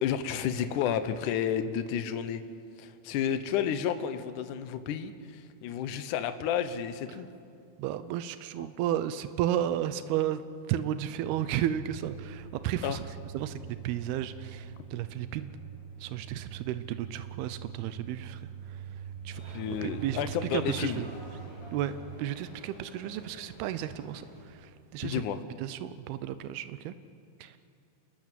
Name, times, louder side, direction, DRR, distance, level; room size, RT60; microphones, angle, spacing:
voice 1, 0.0-2.4 2.8-7.3 12.8-13.0 19.5-21.0 25.0-25.4, left 9 dB, 65° left, 10 dB, 2.2 m, -31 dB
voice 2, 7.8-10.4 10.7-13.0 13.3-13.6 13.8-15.6 16.0-21.1 21.7-25.2 25.6-26.9 27.4-27.6, right 11 dB, 90° right, 12 dB, 2.8 m, -33 dB
sound 1, 11.1-22.1, right 7 dB, 50° right, 9.5 m, -43 dB
sound 2, 19.3-24.4, equal, 30° left, 7.8 m, -50 dB
27.5 x 20.5 x 7.6 m, 2.4 s
omnidirectional pair, 4.4 m